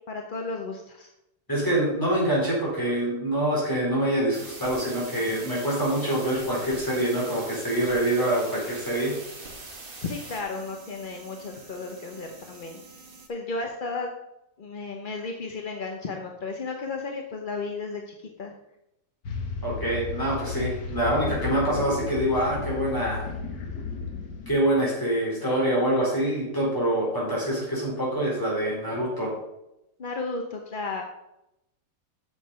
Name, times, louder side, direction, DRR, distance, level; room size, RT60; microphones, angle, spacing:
voice 1, 0.1-1.1 10.0-12.8 13.3-14.1 14.6-18.5 30.0-31.0, left 3 dB, 45° left, 2 dB, 0.7 m, -34 dB
voice 2, 1.5-9.1 19.6-23.3 24.5-29.4, right 1 dB, 10° left, -5 dB, 4.0 m, -25 dB
sound 1, 4.3-13.3, right 3 dB, 35° right, 1.4 m, -43 dB
sound 2, 19.2-24.6, left 4 dB, 90° left, 2.0 m, -33 dB
7.3 x 6.6 x 5.5 m, 0.88 s
omnidirectional pair, 1.8 m